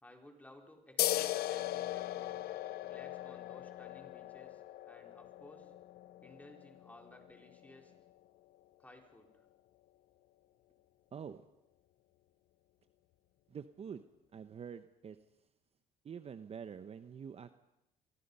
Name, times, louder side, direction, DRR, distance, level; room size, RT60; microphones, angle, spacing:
voice 1, 0.0-2.5 2.8-5.7 6.2-7.9 8.8-9.5, left 1 dB, 10° left, 2 dB, 4.5 m, -58 dB
sound 1, 1.0-8.1, left 14 dB, 70° left, 0.8 m, -39 dB
voice 2, 11.1-11.5 13.5-14.0 14.3-15.2 16.0-17.6, right 7 dB, 35° right, 11 dB, 0.9 m, -46 dB
27.5 x 23.5 x 5.6 m, 0.87 s
cardioid pair, 110°, 17 cm